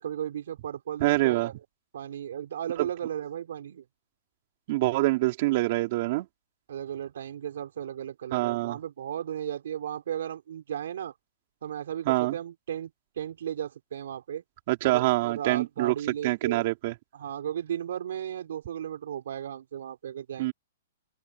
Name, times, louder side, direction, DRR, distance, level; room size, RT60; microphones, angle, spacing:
voice 1, 0.0-1.5 1.9-3.8 6.7-11.1 11.6-12.9 13.2-14.4 14.8-16.6 17.1-20.5, right 10 dB, 70° right, 5.2 m, -35 dB
voice 2, 1.0-1.5 2.8-2.9 4.7-6.3 8.3-8.8 12.1-12.4 14.7-15.9 16.2-16.9 20.4-20.5, right 19 dB, 40° right, 3.8 m, -25 dB
open air
hypercardioid pair, 160°, 0 cm